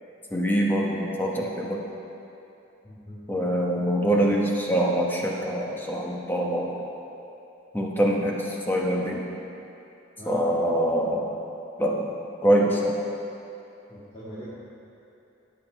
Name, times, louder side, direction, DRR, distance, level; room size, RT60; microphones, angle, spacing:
voice 1, 0.3-1.8 3.3-6.8 7.7-9.2 10.2-11.3 11.8-12.1 12.4-13.0, right 1 dB, 10° left, -2 dB, 1.2 m, -24 dB
voice 2, 2.8-3.3 10.2-10.4 13.9-14.5, right 1 dB, 25° left, -10 dB, 2.0 m, -41 dB
16.5 x 7.3 x 4.6 m, 2.9 s
head